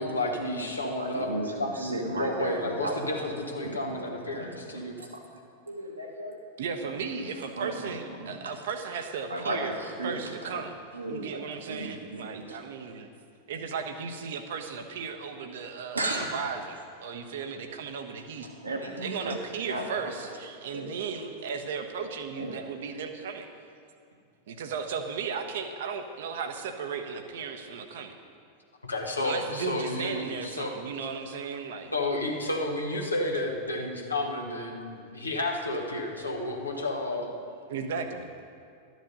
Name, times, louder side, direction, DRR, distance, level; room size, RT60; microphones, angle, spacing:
voice 1, 0.0-1.3 1.6-4.9 28.8-30.8 31.9-37.3, left 2 dB, 80° left, 1 dB, 1.5 m, -31 dB
voice 2, 1.0-3.3 3.6-4.6 5.0-5.4 5.7-6.4 7.2-7.3 7.6-7.9 8.2-8.3 9.3-10.6 10.9-11.4 11.7-12.6 15.9-16.3 18.6-19.4 19.7-20.1 20.7-20.9 22.4-22.6, right 2 dB, 80° right, 0 dB, 1.6 m, -35 dB
voice 3, 6.6-9.7 10.0-10.8 11.1-13.1 13.5-18.5 19.0-23.5 24.5-28.2 29.2-31.9 37.7-38.3, right 6 dB, 55° right, 6 dB, 1.0 m, -35 dB
12.5 x 9.3 x 5.4 m, 2.3 s
figure-of-eight pair, 90°, 0 cm